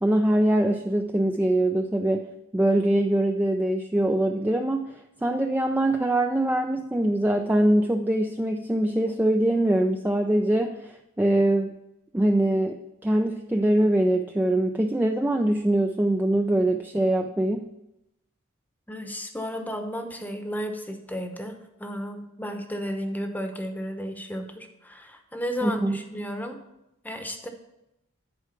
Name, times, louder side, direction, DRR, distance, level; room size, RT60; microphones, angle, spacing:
voice 1, 0.0-2.3 2.5-4.9 5.2-11.7 12.1-17.7 25.6-26.0, right 1 dB, 10° right, 4 dB, 0.4 m, -23 dB
voice 2, 18.9-26.6 27.0-27.5, equal, 10° left, 5 dB, 0.9 m, -33 dB
10.5 x 4.7 x 5.7 m, 0.88 s
head